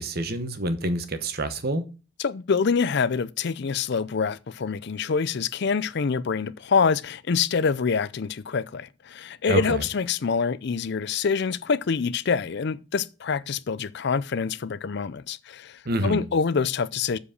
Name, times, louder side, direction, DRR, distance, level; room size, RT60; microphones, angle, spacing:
voice 1, 0.0-1.8 9.5-9.8 15.9-16.2, right 1 dB, 50° right, 1.1 m, -27 dB
voice 2, 2.2-17.2, left 5 dB, 55° left, 0.5 m, -26 dB
7.5 x 4.9 x 6.5 m
head